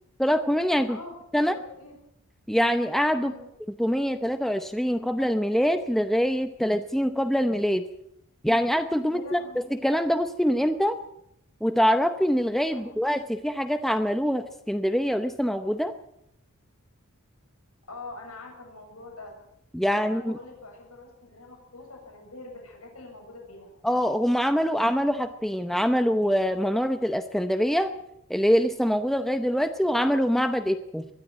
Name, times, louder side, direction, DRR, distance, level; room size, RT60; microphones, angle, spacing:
voice 1, 0.2-1.0 1.3-1.5 2.5-3.3 3.8-7.9 8.4-11.0 11.6-15.9 19.7-20.4 23.8-27.9 28.3-31.1, equal, ahead, 8 dB, 0.7 m, -24 dB
voice 2, 0.9-2.0 3.1-3.5 9.1-9.6 12.7-13.0 17.9-19.4 19.8-23.7 29.8-30.1, left 2 dB, 80° left, 2 dB, 7.2 m, -44 dB
22.0 x 13.0 x 9.0 m, 0.77 s
head